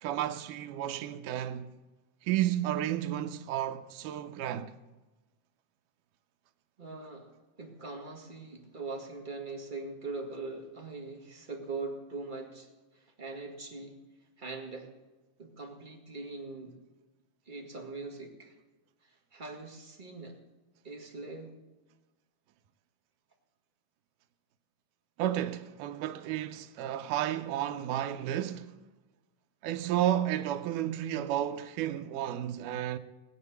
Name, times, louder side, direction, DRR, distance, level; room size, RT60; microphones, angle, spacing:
voice 1, 0.0-1.7 2.2-4.7 25.2-28.7 29.6-33.0, right 12 dB, 90° right, 2.3 m, -32 dB
voice 2, 6.8-7.3 7.6-12.7 12.9-14.0 14.4-14.9 15.4-16.7 17.4-18.5 19.3-20.4 20.8-21.6, right 3 dB, 20° right, 1.5 m, -41 dB
19.5 x 8.7 x 6.9 m
omnidirectional pair, 3.6 m